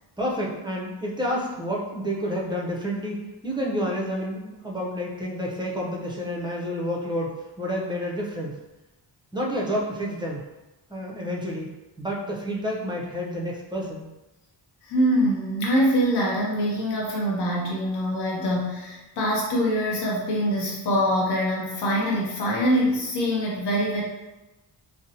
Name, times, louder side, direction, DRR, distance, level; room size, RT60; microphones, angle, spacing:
voice 1, 0.2-8.6 9.3-10.4 10.9-11.7 12.0-14.1, equal, 10° right, -3 dB, 0.5 m, -29 dB
voice 2, 14.8-24.0, equal, 60° left, -4 dB, 0.7 m, -24 dB
2.6 x 2.1 x 2.6 m, 1.0 s
cardioid pair, 80°, 45 cm